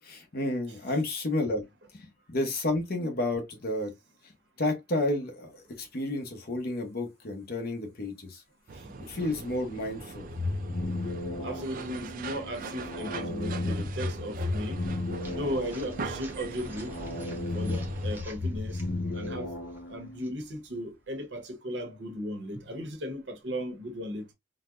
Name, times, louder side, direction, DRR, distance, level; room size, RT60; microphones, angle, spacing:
voice 1, 0.0-1.7 1.9-3.9 4.2-8.4 9.1-10.3 14.4-14.8, left 2 dB, 55° left, 0.9 m, -31 dB
sound 1, 8.7-18.2, right 4 dB, 50° right, 0.4 m, -41 dB
sound 2, 10.3-20.3, left 2 dB, 80° left, 1.0 m, -34 dB
voice 2, 11.4-14.8 15.3-17.0 17.5-18.8 19.1-19.6 19.9-24.3, equal, 75° right, 1.0 m, -36 dB
sound 3, 15.2-21.4, right 1 dB, 10° right, 0.6 m, -49 dB
4.0 x 2.1 x 2.4 m
head